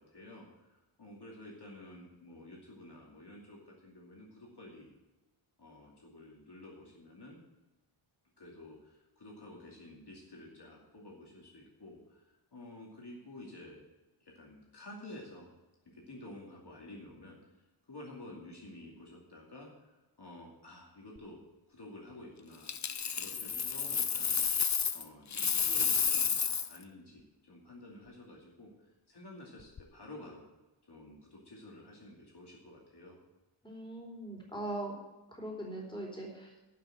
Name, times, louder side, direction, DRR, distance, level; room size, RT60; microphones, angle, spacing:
voice 1, 0.0-5.0 5.6-7.4 8.4-13.8 14.2-15.5 15.9-17.5 17.9-21.4 21.7-24.4 24.9-28.7 29.1-30.4 30.9-33.2, left 1 dB, 50° left, -2 dB, 2.6 m, -51 dB
Coin (dropping), 22.7-25.0 25.3-26.8 29.6-29.8, left 6 dB, 35° left, 0.6 m, -31 dB
voice 2, 33.6-35.0 35.3-36.5, right 1 dB, 10° left, -1 dB, 4.1 m, -40 dB
11.5 x 6.1 x 8.6 m, 1.1 s
wide cardioid pair, 85°, 50 cm